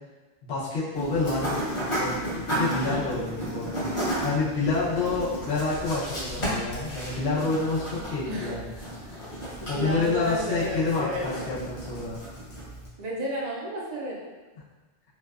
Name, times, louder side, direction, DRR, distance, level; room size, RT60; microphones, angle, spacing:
voice 1, 0.4-1.6 2.0-8.6 9.7-12.2, left 3 dB, 80° left, -9 dB, 1.0 m, -28 dB
sound 1, 0.9-12.9, right 1 dB, 35° left, 0.7 m, -33 dB
voice 2, 2.6-3.1 8.3-9.3 9.6-11.3 13.0-14.2, equal, 55° right, -4 dB, 0.5 m, -33 dB
2.6 x 2.2 x 2.3 m, 1.3 s
omnidirectional pair, 1.1 m